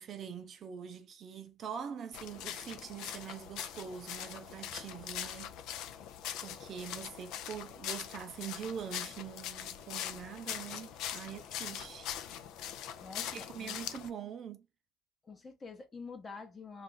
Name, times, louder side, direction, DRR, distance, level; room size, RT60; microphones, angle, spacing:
voice 1, 0.0-5.6 6.4-12.1 13.2-14.7, right 7 dB, 45° right, 0.5 m, -44 dB
sound 1, 2.1-14.1, left 10 dB, 75° left, 0.4 m, -42 dB
voice 2, 13.0-13.8 15.2-16.8, left 4 dB, 25° left, 0.8 m, -47 dB
2.5 x 2.4 x 3.8 m
cardioid pair, 120°, 0 cm